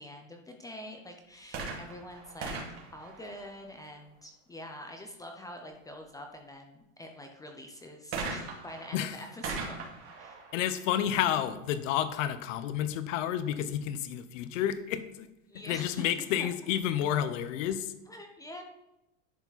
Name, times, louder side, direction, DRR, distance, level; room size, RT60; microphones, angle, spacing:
voice 1, 0.0-2.6 2.9-9.8 10.2-10.4 15.5-16.5 17.7-17.8 18.1-18.6, left 1 dB, 10° left, 3 dB, 0.6 m, -46 dB
sound 1, 1.4-4.0 8.1-11.8 12.6-12.7, right 4 dB, 40° right, 2.4 m, -40 dB
voice 2, 10.5-15.3 15.7-17.9, left 10 dB, 70° left, 12 dB, 0.8 m, -30 dB
11.0 x 4.8 x 4.0 m, 0.94 s
supercardioid pair, 145°, 39 cm